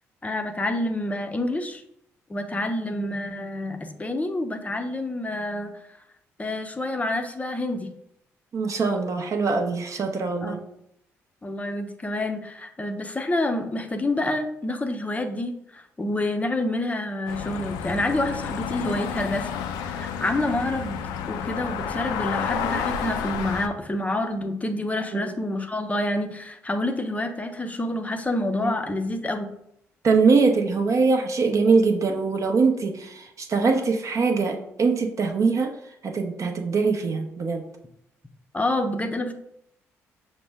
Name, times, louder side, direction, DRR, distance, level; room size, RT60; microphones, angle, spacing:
voice 1, 0.2-1.8 2.3-5.7 6.4-7.9 10.4-10.6 11.4-19.5 19.8-21.0 21.3-29.5 38.5-39.3, left 1 dB, 20° left, 5 dB, 0.6 m, -28 dB
voice 2, 8.5-10.6 25.1-25.4 28.6-28.7 30.0-35.7 36.0-37.7, right 4 dB, 45° right, 4 dB, 0.7 m, -22 dB
sound 1, 17.3-23.7, left 7 dB, 75° left, 0.4 m, -30 dB
5.9 x 2.1 x 3.4 m, 0.76 s
hypercardioid pair, 45°, 7 cm